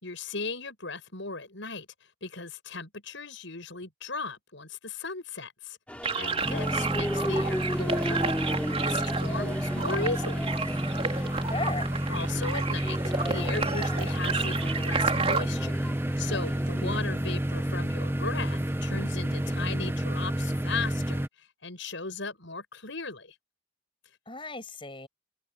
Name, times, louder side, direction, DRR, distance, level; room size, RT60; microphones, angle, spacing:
voice 1, 0.0-1.9 2.2-5.8 6.1-8.4 8.6-10.5 11.0-11.3 12.1-15.8 16.2-23.4, left 4 dB, 65° left, 6.4 m, -37 dB
sound 1, 5.9-17.0, equal, 5° left, 2.7 m, -37 dB
sound 2, 6.0-15.4, right 4 dB, 30° right, 4.3 m, -32 dB
sound 3, 6.4-21.3, right 1 dB, 10° right, 0.8 m, -30 dB
voice 2, 6.5-7.3 11.5-11.9 16.8-17.3 24.3-25.1, left 2 dB, 25° left, 6.3 m, -37 dB
head